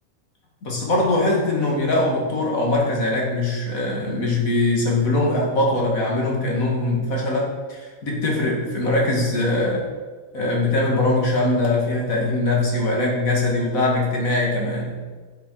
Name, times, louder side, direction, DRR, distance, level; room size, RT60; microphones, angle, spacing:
voice 1, 0.6-9.9 10.3-14.9, left 2 dB, 80° left, -2 dB, 2.6 m, -22 dB
8.1 x 7.5 x 6.5 m, 1.5 s
omnidirectional pair, 1.4 m